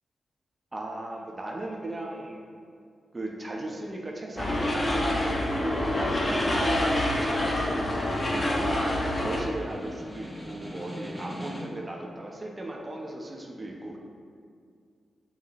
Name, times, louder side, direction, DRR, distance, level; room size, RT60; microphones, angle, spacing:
voice 1, 0.7-2.5 3.1-8.6 9.2-14.0, right 1 dB, 35° right, 0 dB, 1.0 m, -37 dB
sound 1, 4.4-9.4, left 1 dB, 45° left, 1.3 m, -26 dB
Snare drum, 7.5-12.0, equal, 10° left, 1.3 m, -43 dB
7.2 x 5.8 x 3.2 m, 2.2 s
supercardioid pair, 40°, 0 cm